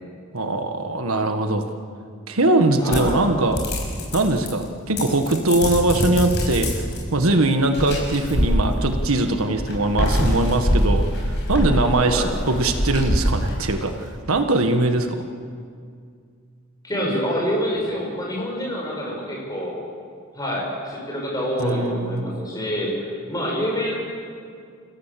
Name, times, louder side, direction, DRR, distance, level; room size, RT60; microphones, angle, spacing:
voice 1, 0.3-1.7 2.3-3.6 4.1-6.7 7.1-15.2 21.6-22.3, right 2 dB, 80° right, 6 dB, 1.6 m, -21 dB
voice 2, 2.8-3.2 12.0-12.3 16.8-19.8 20.3-23.9, equal, 15° left, -2 dB, 6.7 m, -26 dB
sound 1, 2.9-4.6 5.0-7.0 7.7-9.1 9.6-13.9, equal, 55° left, 6.3 m, -24 dB
28.5 x 16.5 x 7.6 m, 2.2 s
head